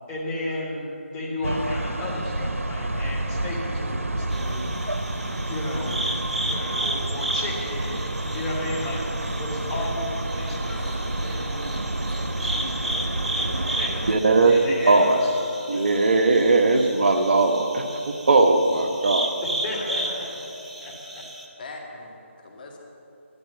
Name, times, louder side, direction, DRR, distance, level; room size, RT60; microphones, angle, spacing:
voice 1, 0.1-4.6 5.5-6.1 6.5-9.0 9.4-11.8 12.2-16.1 19.4-21.2, left 1 dB, 15° left, -5 dB, 2.8 m, -34 dB
sound 1, 1.4-14.2, right 1 dB, 85° right, 1.0 m, -29 dB
sound 2, 4.3-21.5, right 1 dB, 5° right, 0.6 m, -34 dB
voice 2, 14.1-14.6 14.9-15.2 15.7-19.3, right 3 dB, 50° right, 5 dB, 1.2 m, -19 dB
voice 3, 19.5-20.2 21.6-22.2 22.4-22.8, left 3 dB, 40° left, 0 dB, 2.4 m, -40 dB
12.0 x 11.5 x 7.1 m, 2.6 s
figure-of-eight pair, 160°, 7 cm